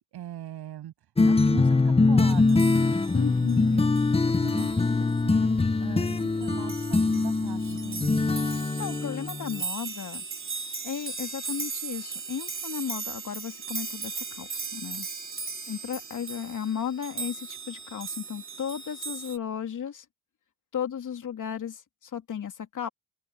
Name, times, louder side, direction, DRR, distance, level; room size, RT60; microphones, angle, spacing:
voice 1, 0.1-0.9 1.2-3.9 4.4-5.5 5.8-8.3, right 11 dB, 65° right, 7.7 m, -41 dB
sound 1, 1.2-9.6, left 3 dB, 15° left, 1.0 m, -23 dB
sound 2, 2.2-19.4, right 5 dB, 30° right, 2.9 m, -38 dB
voice 2, 3.1-3.7 8.8-10.2 10.8-15.1 15.7-20.0 20.7-22.9, left 8 dB, 45° left, 3.1 m, -34 dB
open air
supercardioid pair, 75°, 42 cm